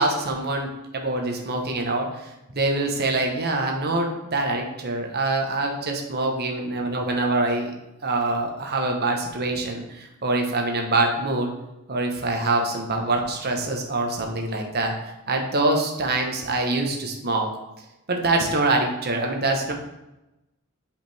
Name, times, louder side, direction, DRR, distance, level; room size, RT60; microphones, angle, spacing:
voice 1, 0.0-7.7 8.0-11.5 11.9-14.9 15.3-17.5 18.1-19.7, right 2 dB, 50° right, 2 dB, 1.1 m, -25 dB
7.8 x 5.0 x 3.5 m, 0.94 s
head